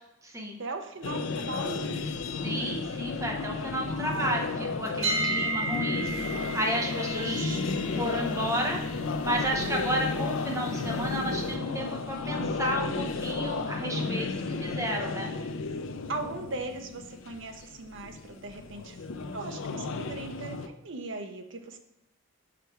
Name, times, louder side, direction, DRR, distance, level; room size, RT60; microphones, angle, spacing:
voice 1, 0.6-2.0 3.8-4.5 6.4-6.7 7.1-7.6 10.9-11.2 13.8-14.3 16.1-19.0 19.3-21.8, right 3 dB, 55° right, 5 dB, 0.7 m, -39 dB
sound 1, 1.0-20.7, left 4 dB, 60° left, 0.4 m, -33 dB
voice 2, 2.4-4.5 4.8-6.1 6.5-7.6 8.0-8.8 9.2-14.3 14.6-15.3, equal, 15° right, 0 dB, 0.9 m, -32 dB
sound 2, 5.0-16.9, right 1 dB, 30° right, 2.5 m, -37 dB
sound 3, 6.1-11.6, left 2 dB, 90° left, 0.8 m, -43 dB
5.7 x 5.0 x 4.5 m, 0.89 s
head